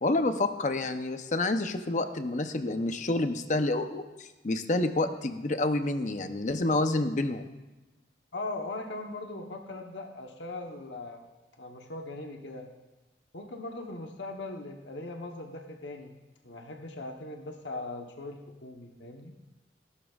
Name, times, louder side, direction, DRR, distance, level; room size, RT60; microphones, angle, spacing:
voice 1, 0.0-7.5, left 2 dB, 40° left, 8 dB, 0.7 m, -28 dB
voice 2, 8.3-11.2 11.6-12.7 13.3-16.2 16.4-19.3, left 2 dB, 80° left, 3 dB, 1.0 m, -39 dB
17.5 x 12.0 x 2.4 m, 1.1 s
head